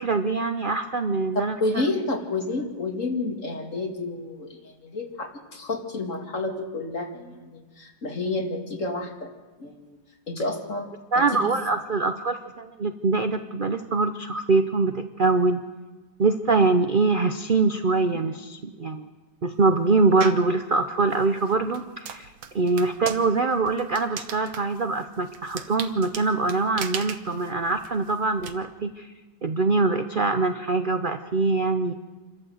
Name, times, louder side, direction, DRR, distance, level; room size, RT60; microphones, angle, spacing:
voice 1, 0.0-1.6 11.1-15.6 16.2-19.1 19.4-29.1 29.4-31.9, right 3 dB, 60° right, 8 dB, 0.5 m, -23 dB
voice 2, 1.6-9.3 9.6-10.0 10.3-11.5 22.8-23.0, left 2 dB, 40° left, 3 dB, 2.6 m, -30 dB
sound 1, 20.2-20.5 21.1-28.5, right 7 dB, 80° right, 1.8 m, -38 dB
27.5 x 13.0 x 7.9 m, 1.3 s
omnidirectional pair, 2.1 m